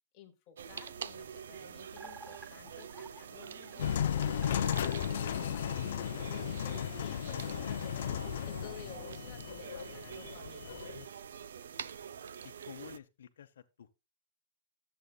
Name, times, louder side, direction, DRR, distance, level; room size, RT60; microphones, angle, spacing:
voice 1, 0.1-5.2 5.5-10.8, left 10 dB, 25° left, 0.9 m, -54 dB
sound 1, 0.6-13.0, right 7 dB, 75° right, 0.5 m, -46 dB
sound 2, 2.0-6.2, right 3 dB, 5° right, 0.5 m, -54 dB
sound 3, 3.8-11.1, left 9 dB, 55° left, 0.4 m, -35 dB
voice 2, 12.4-13.9, left 9 dB, 70° left, 0.8 m, -51 dB
12.5 x 7.8 x 2.3 m
hypercardioid pair, 175°, 0 cm